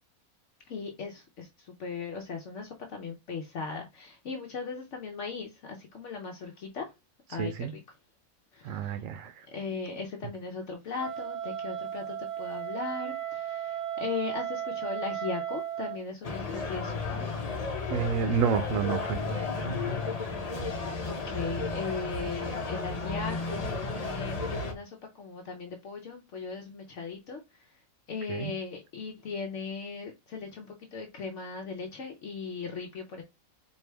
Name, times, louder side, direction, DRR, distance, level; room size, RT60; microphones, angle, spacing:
voice 1, 0.7-6.9 7.3-7.8 8.5-9.0 9.5-17.3 21.0-27.8 28.1-33.2, left 5 dB, 60° left, 0.9 m, -38 dB
voice 2, 7.4-7.7 8.6-9.5 17.9-19.9 28.3-28.5, right 7 dB, 75° right, 0.9 m, -30 dB
Wind instrument woodwind instrument, 11.0-16.0, right 10 dB, 55° right, 0.5 m, -35 dB
sound 1, 16.2-24.7, left 3 dB, 35° left, 0.8 m, -33 dB
4.5 x 2.7 x 3.3 m
omnidirectional pair, 1.5 m